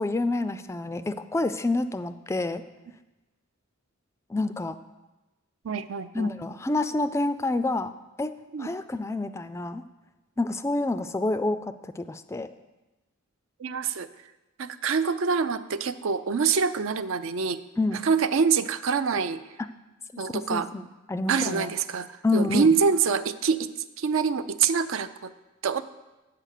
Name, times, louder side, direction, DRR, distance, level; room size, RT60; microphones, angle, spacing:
voice 1, 0.0-2.6 4.3-4.8 6.1-7.9 8.2-8.3 8.6-9.8 10.4-12.5 17.8-18.0 20.1-20.8 21.1-21.7 22.2-22.7, left 2 dB, 15° left, 12 dB, 0.3 m, -28 dB
voice 2, 5.6-6.3 8.5-8.7 13.6-14.1 14.6-17.6 17.9-19.4 20.2-20.7 21.3-22.1 22.3-23.7 24.0-25.3 25.6-25.8, right 5 dB, 70° right, 12 dB, 0.5 m, -25 dB
8.4 x 7.6 x 6.6 m, 1.1 s
head